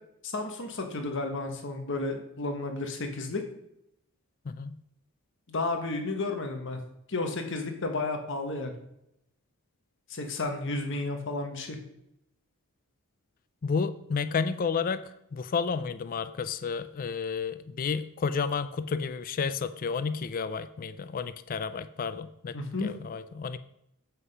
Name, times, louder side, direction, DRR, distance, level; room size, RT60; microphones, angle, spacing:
voice 1, 0.2-3.4 5.5-6.8 7.1-8.7 10.1-11.8 22.5-22.9, left 2 dB, 55° left, 5 dB, 1.2 m, -32 dB
voice 2, 4.5-4.8 13.6-15.0 15.3-23.6, left 5 dB, 40° left, 13 dB, 0.3 m, -31 dB
8.1 x 5.8 x 5.4 m, 0.79 s
head